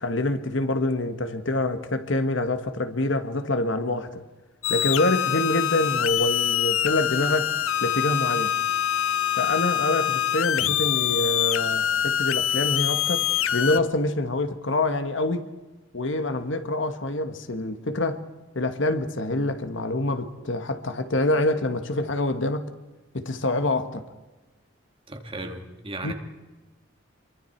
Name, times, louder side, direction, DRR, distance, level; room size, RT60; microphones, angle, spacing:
voice 1, 0.0-4.2 4.7-7.5 7.8-8.5 9.4-13.3 13.5-15.5 15.9-18.2 18.5-22.7 23.1-24.0 26.0-26.1, left 2 dB, 65° left, 1.4 m, -26 dB
sound 1, 4.6-13.8, left 10 dB, 85° left, 0.7 m, -25 dB
voice 2, 25.1-26.1, right 2 dB, 25° right, 2.4 m, -36 dB
28.0 x 23.5 x 4.6 m
head